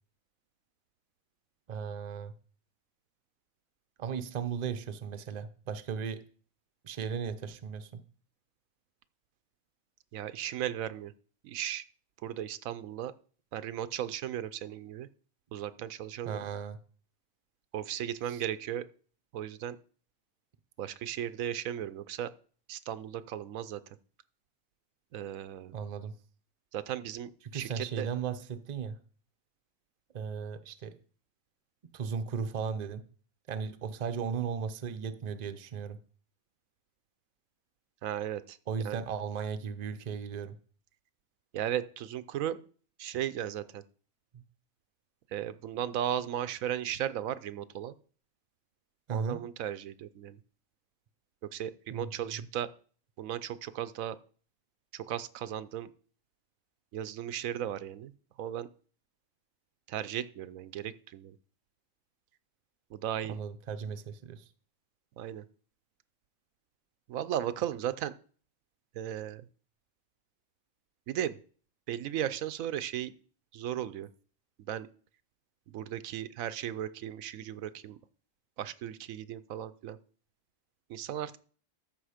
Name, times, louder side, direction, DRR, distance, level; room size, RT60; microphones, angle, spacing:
voice 1, 1.7-2.3 4.0-6.2 6.8-8.0 16.2-16.8 18.3-18.4 25.7-26.1 27.5-28.9 30.1-30.9 31.9-33.0 33.5-36.0 38.7-40.5 44.3-44.4 49.1-49.4 51.9-52.5 63.2-64.5, right 6 dB, 40° right, 9 dB, 0.6 m, -36 dB
voice 2, 10.1-11.1 11.4-11.8 12.2-13.1 13.5-15.1 15.5-16.4 17.7-18.8 19.3-19.8 20.8-22.3 22.7-24.0 25.1-25.8 26.7-28.1 38.0-38.6 38.8-39.0 41.5-42.6 43.0-43.8 45.3-47.9 49.1-50.4 51.5-52.7 53.2-54.2 54.9-55.9 56.9-58.1 58.4-58.7 59.9-61.4 62.9-63.4 65.2-65.4 67.1-68.1 68.9-69.5 71.1-71.4 71.9-73.1 73.5-74.1 74.7-74.9 75.7-78.0 78.6-80.0 80.9-81.4, right 10 dB, 80° right, 13 dB, 1.0 m, -36 dB
13.5 x 5.4 x 5.0 m, 0.43 s
omnidirectional pair, 1.4 m